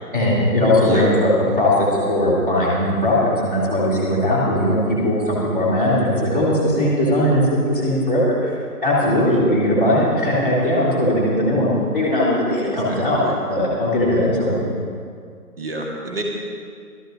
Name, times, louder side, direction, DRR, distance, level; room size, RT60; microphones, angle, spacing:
voice 1, 0.1-1.3 1.6-4.8 5.0-7.4 7.7-8.5 8.8-14.6, left 1 dB, 10° right, -14 dB, 1.8 m, -19 dB
voice 2, 0.8-1.1 9.0-9.4 12.6-13.4 15.6-16.2, right 1 dB, 40° right, -1 dB, 1.5 m, -29 dB
20.0 x 13.0 x 2.6 m, 2.2 s
figure-of-eight pair, 170°, 47 cm